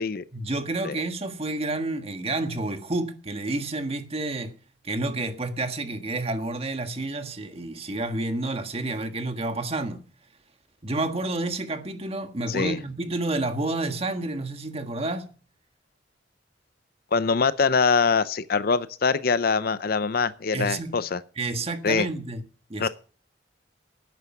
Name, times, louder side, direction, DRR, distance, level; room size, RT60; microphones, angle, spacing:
voice 1, 0.3-4.6 4.8-10.0 10.8-15.3 20.5-21.0 21.4-22.4 22.7-22.9, right 2 dB, 35° right, 1.6 m, -29 dB
voice 2, 12.5-12.8 17.1-21.2 21.8-22.1 22.8-22.9, left 5 dB, 60° left, 0.6 m, -23 dB
11.5 x 9.4 x 6.0 m
head